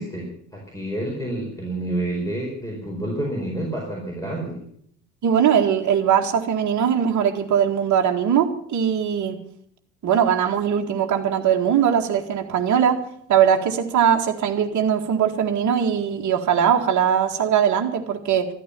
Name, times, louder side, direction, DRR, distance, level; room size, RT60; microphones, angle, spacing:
voice 1, 0.0-4.6, right 1 dB, 5° left, -1 dB, 4.8 m, -29 dB
voice 2, 5.2-9.4 10.0-18.5, right 8 dB, 35° right, 2 dB, 1.9 m, -20 dB
13.5 x 12.5 x 7.0 m, 0.67 s
figure-of-eight pair, 65°, 49 cm